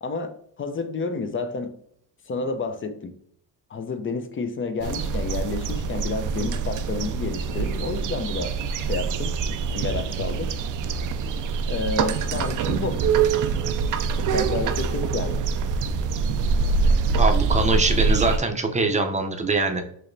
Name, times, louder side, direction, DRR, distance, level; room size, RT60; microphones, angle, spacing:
voice 1, 0.0-1.7 2.3-3.1 3.7-9.4 9.7-10.5 11.7-13.0 14.2-15.4, left 4 dB, 35° left, 0.6 m, -30 dB
sound 1, 4.8-18.4, right 5 dB, 55° right, 0.5 m, -24 dB
voice 2, 17.2-19.8, right 3 dB, 20° right, 0.7 m, -23 dB
4.8 x 2.9 x 2.6 m
cardioid pair, 85°, 38 cm